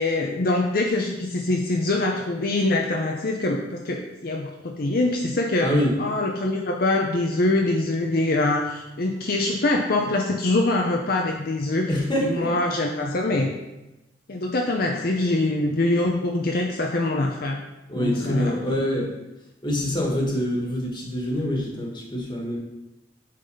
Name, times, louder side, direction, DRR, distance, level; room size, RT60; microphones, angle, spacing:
voice 1, 0.0-5.7 6.0-11.9 12.2-13.5 14.3-17.6 18.0-18.6, left 2 dB, 55° left, 1 dB, 0.7 m, -24 dB
voice 2, 5.6-6.0 11.9-12.5 17.9-19.1 19.6-22.6, equal, 25° left, -1 dB, 1.6 m, -25 dB
8.5 x 4.1 x 5.4 m, 0.98 s
head